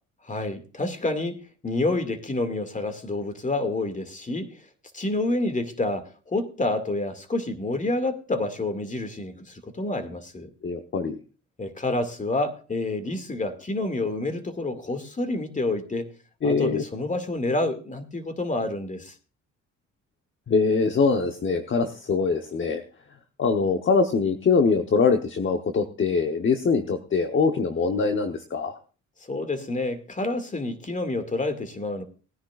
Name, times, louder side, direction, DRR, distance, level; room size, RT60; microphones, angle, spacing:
voice 1, 0.2-4.5 4.9-10.5 11.6-16.1 16.4-19.1 29.3-32.0, left 2 dB, 25° left, 8 dB, 2.2 m, -28 dB
voice 2, 10.6-11.2 16.4-16.8 20.5-22.8 23.4-28.8, left 4 dB, 40° left, 6 dB, 1.1 m, -23 dB
19.5 x 10.5 x 2.5 m, 0.35 s
cardioid pair, 90°, 30 cm